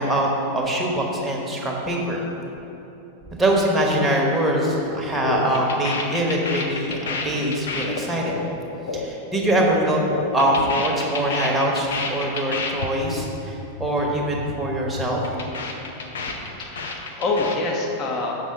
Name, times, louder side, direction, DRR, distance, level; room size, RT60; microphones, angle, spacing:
voice 1, 0.0-2.3 3.3-8.4 8.9-10.0 10.3-15.2, right 1 dB, 10° right, -2 dB, 1.2 m, -23 dB
sound 1, 4.6-4.8 5.1-9.7 9.9-12.9 13.1-13.3 13.6-13.9 14.2-14.5 14.8-17.6, left 4 dB, 65° left, 0.7 m, -30 dB
voice 2, 16.3-18.3, left 3 dB, 30° left, 0 dB, 1.0 m, -26 dB
7.4 x 6.0 x 3.8 m, 3.0 s
figure-of-eight pair, 90°, 0 cm